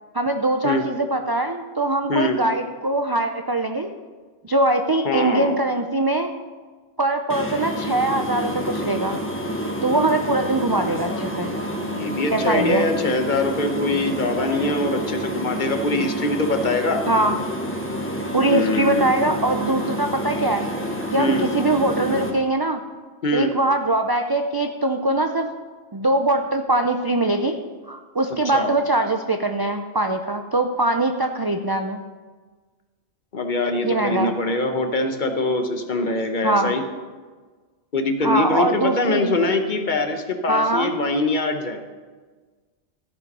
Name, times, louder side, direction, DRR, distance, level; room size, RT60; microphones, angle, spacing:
voice 1, 0.1-3.9 4.4-6.3 7.0-9.2 9.8-11.5 12.3-12.9 17.1-17.4 18.3-20.7 21.1-22.8 23.3-25.5 25.9-27.6 27.9-32.0 33.8-34.3 36.4-36.7 38.2-39.4 40.5-40.9, right 2 dB, 40° right, 5 dB, 0.3 m, -22 dB
voice 2, 2.1-2.4 5.0-5.6 11.9-17.0 18.5-19.1 21.2-21.5 23.2-23.5 28.5-28.7 33.3-36.8 37.9-41.8, left 2 dB, 45° left, 6 dB, 1.0 m, -23 dB
sound 1, 7.3-22.3, equal, 10° left, 1.1 m, -28 dB
14.0 x 5.5 x 5.4 m, 1.4 s
omnidirectional pair, 1.1 m